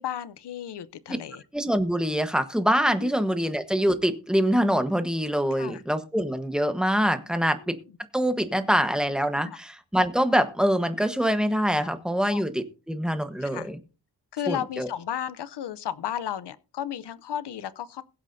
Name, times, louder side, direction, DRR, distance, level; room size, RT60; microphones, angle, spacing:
voice 1, 0.0-1.4 3.0-3.1 5.5-5.8 7.4-7.7 9.4-9.6 11.8-11.9 12.3-12.4 13.4-13.7 14.3-18.0, left 10 dB, 90° left, 0.7 m, -34 dB
voice 2, 1.5-7.8 8.1-13.8 14.5-14.9, equal, ahead, 1.1 m, -24 dB
22.0 x 8.3 x 2.7 m
wide cardioid pair, 125°, 39 cm